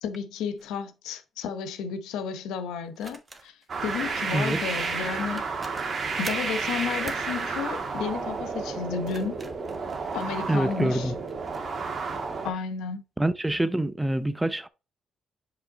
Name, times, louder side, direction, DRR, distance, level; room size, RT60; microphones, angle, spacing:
voice 1, 0.0-5.4 6.2-9.4 10.1-11.1 12.4-13.0, left 6 dB, 90° left, 0.8 m, -32 dB
sound 1, 0.6-0.8 2.9-4.0 5.0-5.1 5.4-6.5 7.0-7.3 8.8-10.7 11.3-11.7, right 3 dB, 30° right, 1.2 m, -45 dB
sound 2, 3.7-12.5, right 4 dB, 50° right, 1.5 m, -31 dB
voice 2, 10.5-11.1 13.2-14.7, right 1 dB, 10° right, 0.6 m, -25 dB
5.2 x 5.1 x 3.9 m
cardioid pair, 90°, 0 cm